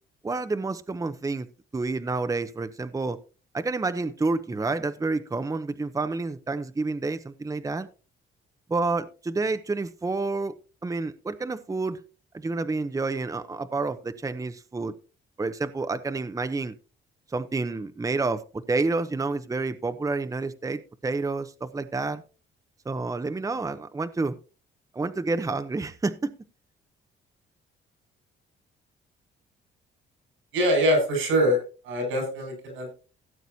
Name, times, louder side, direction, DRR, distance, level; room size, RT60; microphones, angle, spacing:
voice 1, 0.2-1.5 1.7-3.2 3.5-7.9 8.7-10.5 10.8-12.0 12.3-14.9 15.4-16.8 17.3-22.2 22.9-24.4 24.9-26.3, right 3 dB, 15° right, 11 dB, 0.8 m, -29 dB
voice 2, 30.5-31.6 31.8-32.9, equal, 90° right, 3 dB, 7.0 m, -23 dB
17.0 x 7.9 x 2.8 m, 0.34 s
cardioid pair, 90°, 20 cm